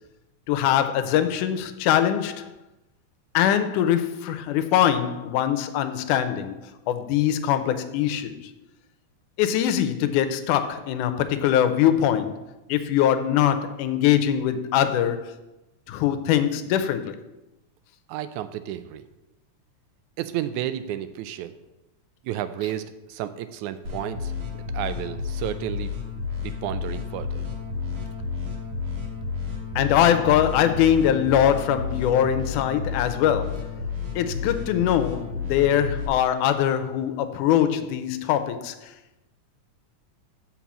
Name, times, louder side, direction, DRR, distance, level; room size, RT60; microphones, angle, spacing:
voice 1, 0.5-2.5 3.3-6.6 6.9-8.3 9.4-12.4 12.7-15.3 15.9-17.2 29.8-33.6 34.2-38.8, left 10 dB, 85° left, 2.2 m, -22 dB
voice 2, 18.1-19.0 20.2-21.5 22.2-25.9 26.4-27.4, right 12 dB, 80° right, 1.9 m, -32 dB
sound 1, 23.8-36.1, left 5 dB, 65° right, 2.5 m, -31 dB
7.2 x 5.4 x 7.3 m
omnidirectional pair, 3.5 m